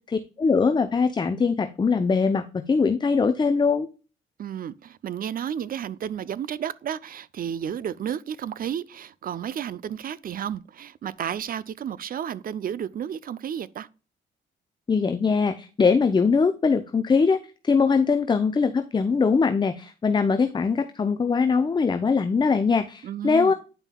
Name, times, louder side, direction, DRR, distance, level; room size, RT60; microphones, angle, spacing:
voice 1, 0.1-3.9 14.9-17.4 17.6-23.5, left 5 dB, 25° left, 0.5 m, -22 dB
voice 2, 4.4-13.9 23.0-23.5, right 9 dB, 45° right, 0.5 m, -32 dB
9.1 x 5.4 x 2.3 m
cardioid pair, 90°, 20 cm